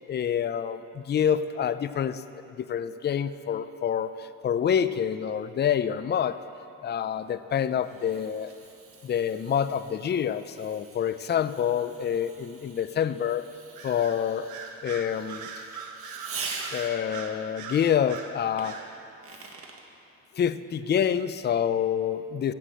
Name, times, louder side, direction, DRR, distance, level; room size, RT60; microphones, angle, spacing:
voice 1, 0.1-2.2 2.5-6.4 6.8-8.5 9.0-13.4 13.8-14.5 14.8-15.5 16.7-18.8 20.3-22.5, left 8 dB, 35° left, 13 dB, 0.5 m, -27 dB
Fireworks, 7.2-17.2 18.6-19.9, right 4 dB, 45° right, 1.6 m, -44 dB
Bird vocalization bird call bird song, 13.8-14.2 14.5-18.3 18.6-18.9, right 6 dB, 80° right, 1.4 m, -40 dB
16.0 x 6.0 x 7.8 m, 2.7 s
cardioid pair, 90°, 30 cm